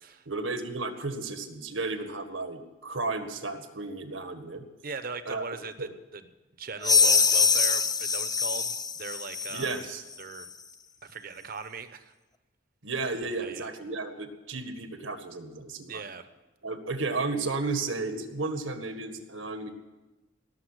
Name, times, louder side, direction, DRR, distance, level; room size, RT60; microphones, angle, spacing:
voice 1, 0.2-4.6 5.2-5.4 5.8-5.9 9.5-10.0 12.8-16.0 16.6-19.7, right 3 dB, 80° right, 7 dB, 1.7 m, -33 dB
voice 2, 4.8-6.2 6.6-9.8 10.2-10.5 11.0-12.1 13.3-13.7 15.9-16.3, right 4 dB, 45° right, 11 dB, 1.0 m, -39 dB
sound 1, 6.8-9.8, left 5 dB, 20° left, 0.5 m, -24 dB
18.0 x 7.1 x 9.8 m, 1.1 s
head